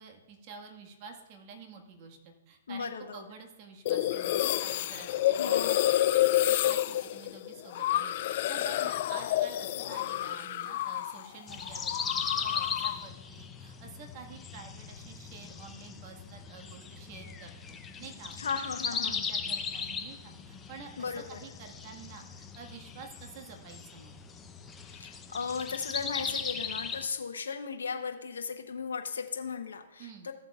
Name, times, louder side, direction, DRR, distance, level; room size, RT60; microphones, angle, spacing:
voice 1, 0.0-6.0 6.4-18.5 19.0-24.2 30.0-30.3, right 5 dB, 40° right, 2 dB, 1.5 m, -49 dB
voice 2, 2.7-3.2 5.4-5.9 18.4-19.2 21.0-21.4 24.8-30.3, left 5 dB, 80° left, 5 dB, 0.7 m, -36 dB
sound 1, 3.9-11.3 11.5-13.1, left 14 dB, 50° left, 0.3 m, -29 dB
sound 2, 11.5-27.1, left 5 dB, 15° left, 0.6 m, -38 dB
14.0 x 7.5 x 2.4 m, 1.1 s
hypercardioid pair, 135°, 0 cm